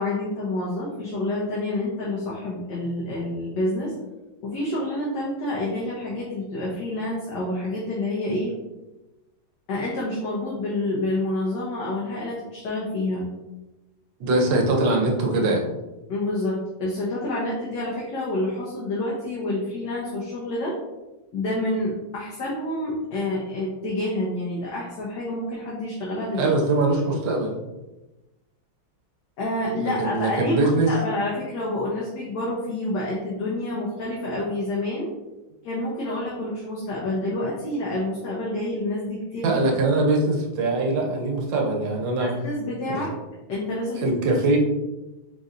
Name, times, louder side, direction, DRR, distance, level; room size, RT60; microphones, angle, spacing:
voice 1, 0.0-3.9 4.4-8.5 9.7-13.3 16.1-20.8 21.3-26.5 29.4-35.1 35.6-39.6 42.2-43.1 43.5-44.0, left 1 dB, 65° left, -5 dB, 1.3 m, -28 dB
voice 2, 14.2-15.6 26.3-27.6 29.8-30.9 39.4-42.3 42.9-43.0 44.0-44.6, right 2 dB, 70° right, 0 dB, 1.4 m, -22 dB
4.0 x 3.9 x 2.5 m, 1.1 s
omnidirectional pair, 2.3 m